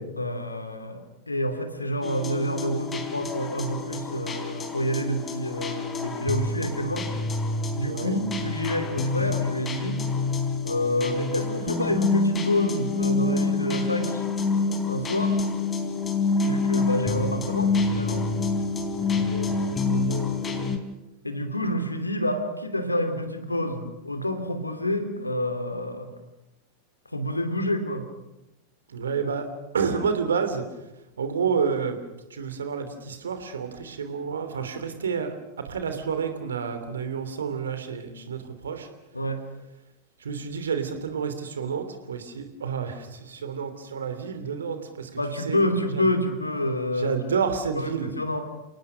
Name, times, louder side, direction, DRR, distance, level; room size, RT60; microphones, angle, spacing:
voice 1, 0.2-7.1 7.7-10.0 10.6-14.2 14.8-15.4 16.4-18.2 21.2-26.1 27.1-28.0 39.1-39.4 45.1-47.2 47.7-48.4, equal, 85° left, 7 dB, 2.8 m, -28 dB
sound 1, 2.0-20.8, left 4 dB, 20° left, 3.2 m, -27 dB
voice 2, 7.8-8.1 19.0-20.7 28.9-29.4 29.7-30.6 31.2-32.0 32.3-35.3 35.6-38.9 40.2-45.1 45.5-45.6 45.9-46.0 47.0-48.1, right 6 dB, 70° right, 8 dB, 3.1 m, -29 dB
29.5 x 18.5 x 6.4 m, 0.95 s
figure-of-eight pair, 90°, 0 cm